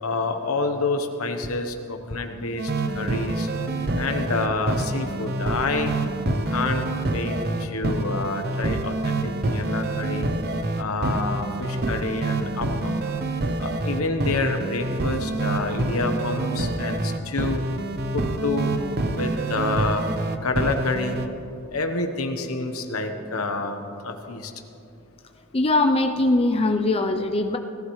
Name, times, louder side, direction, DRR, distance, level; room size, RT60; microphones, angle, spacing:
voice 1, 0.0-3.5 4.0-5.9 6.5-10.3 10.8-13.0 13.6-17.6 18.1-18.7 19.1-20.0 20.4-21.2 21.7-24.5, left 3 dB, 85° left, 5 dB, 1.1 m, -28 dB
sound 1, 2.6-21.3, right 2 dB, 50° right, 0.7 m, -27 dB
voice 2, 25.5-27.6, left 2 dB, 25° left, 4 dB, 0.5 m, -21 dB
17.5 x 15.0 x 3.2 m, 2.8 s
head